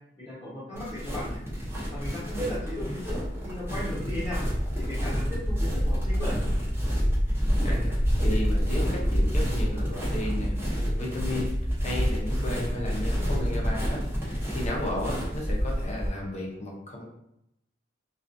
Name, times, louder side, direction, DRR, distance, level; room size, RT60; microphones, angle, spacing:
voice 1, 0.2-1.4 1.9-4.4 4.7-6.3, left 1 dB, 15° left, -15 dB, 1.0 m, -36 dB
sound 1, 0.7-16.1, equal, 15° right, 0.7 m, -28 dB
voice 2, 7.6-10.6 11.0-17.1, left 1 dB, 40° left, -2 dB, 0.7 m, -34 dB
2.4 x 2.4 x 2.5 m, 0.80 s
head